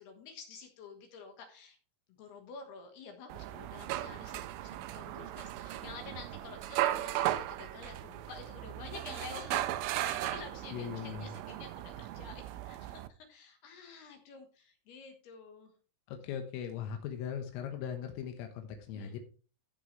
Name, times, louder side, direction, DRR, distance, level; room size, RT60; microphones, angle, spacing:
voice 1, 0.0-1.8 2.1-9.7 10.0-15.7 18.9-19.2, left 5 dB, 65° left, 4 dB, 2.9 m, -50 dB
sound 1, 3.3-13.1, right 14 dB, 85° right, 2.9 m, -37 dB
voice 2, 10.7-11.3 16.1-19.2, left 8 dB, 85° left, 5 dB, 3.8 m, -39 dB
14.5 x 6.5 x 3.2 m, 0.37 s
omnidirectional pair, 5.8 m